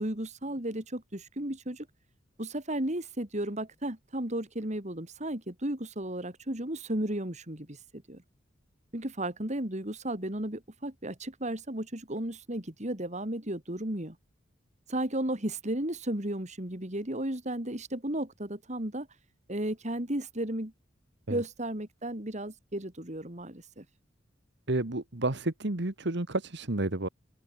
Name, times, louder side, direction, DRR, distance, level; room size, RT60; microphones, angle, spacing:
voice 1, 0.0-1.9 2.4-8.2 8.9-14.2 14.9-19.1 19.5-20.7 21.3-23.8, right 1 dB, 40° right, 3.8 m, -34 dB
voice 2, 24.7-27.1, right 2 dB, 65° right, 1.8 m, -30 dB
open air
head